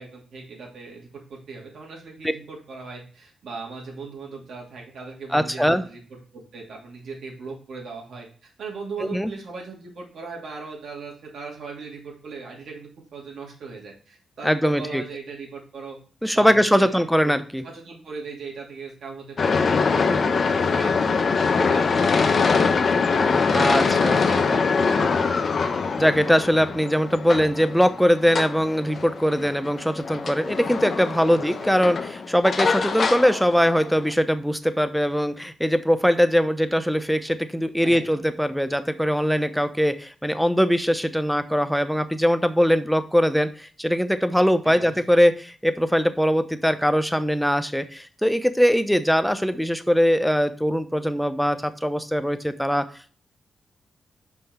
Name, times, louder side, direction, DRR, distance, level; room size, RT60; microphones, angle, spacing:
voice 1, 0.0-16.0 16.3-17.3 17.6-23.2 23.5-25.4 31.3-31.7 37.8-38.2 44.6-45.0, right 4 dB, 75° right, -1 dB, 2.7 m, -39 dB
voice 2, 5.3-5.8 9.0-9.3 14.4-15.0 16.2-17.6 23.5-24.2 26.0-52.8, equal, ahead, 10 dB, 0.8 m, -21 dB
sound 1, 19.4-34.1, left 5 dB, 55° left, 0.8 m, -23 dB
5.5 x 5.4 x 4.5 m, 0.41 s
cardioid pair, 70°, 0 cm